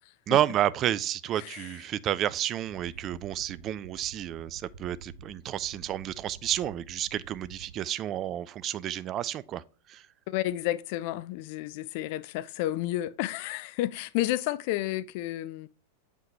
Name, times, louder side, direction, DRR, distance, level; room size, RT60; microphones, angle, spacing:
voice 1, 0.3-9.6 9.9-10.1, right 11 dB, 30° right, 0.3 m, -30 dB
voice 2, 1.4-1.7 10.3-15.7, left 15 dB, 45° left, 0.3 m, -31 dB
sound 1, 2.6-7.8, right 5 dB, 65° right, 0.8 m, -49 dB
7.6 x 5.1 x 3.3 m
figure-of-eight pair, 90°, 0 cm